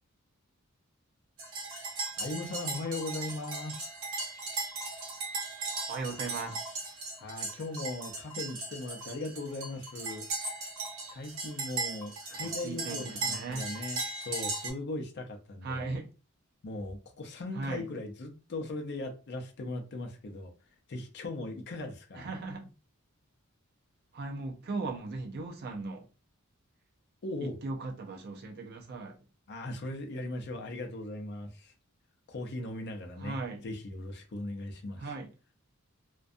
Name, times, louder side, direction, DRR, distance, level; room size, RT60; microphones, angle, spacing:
sound 1, 1.4-14.7, right 3 dB, 65° right, 0.8 m, -37 dB
voice 1, 2.2-3.9 7.2-10.3 11.1-14.0 14.3-16.0 16.6-20.5 20.9-22.3 27.2-27.6 29.5-31.7 32.3-33.4 33.6-35.1, left 2 dB, 50° left, 0.5 m, -38 dB
voice 2, 5.9-6.7 12.3-13.7 15.6-16.1 17.5-17.9 22.1-22.7 24.1-26.1 27.4-29.2 33.2-33.6 35.0-35.3, right 3 dB, 50° right, 0.4 m, -38 dB
2.6 x 2.1 x 2.5 m
head